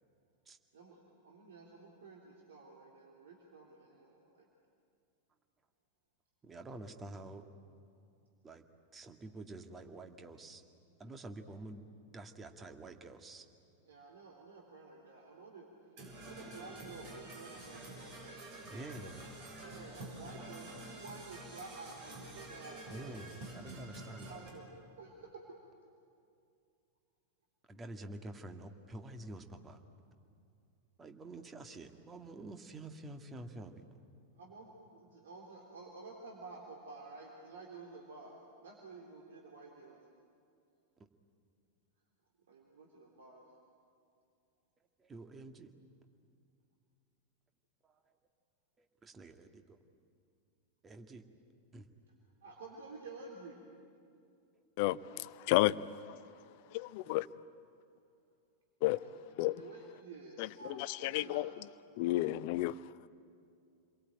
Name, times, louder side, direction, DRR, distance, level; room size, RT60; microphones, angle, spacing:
voice 1, 0.7-4.5 13.8-15.7 16.2-18.4 18.7-19.2 19.6-23.1 24.2-25.3 34.4-40.0 42.5-43.4 52.4-53.6 58.9-59.1 59.5-61.6, right 3 dB, 60° right, 3.3 m, -51 dB
voice 2, 6.4-7.4 8.4-8.6 8.9-10.6 11.0-11.8 12.1-13.5 18.7-19.2 22.9-24.4 27.7-29.8 31.0-33.8 45.0-45.7 48.8-49.8 50.8-51.2 51.7-51.9, right 2 dB, 20° right, 2.0 m, -48 dB
Percussion / Brass instrument, 16.0-24.5, right 2 dB, 45° right, 7.3 m, -48 dB
voice 3, 54.8-55.8 56.0-56.2 56.7-57.2 58.8-59.0 59.4-59.6 60.4-61.7 62.0-62.8, left 17 dB, 50° left, 0.7 m, -32 dB
29.5 x 22.0 x 9.1 m
figure-of-eight pair, 90°, 0 cm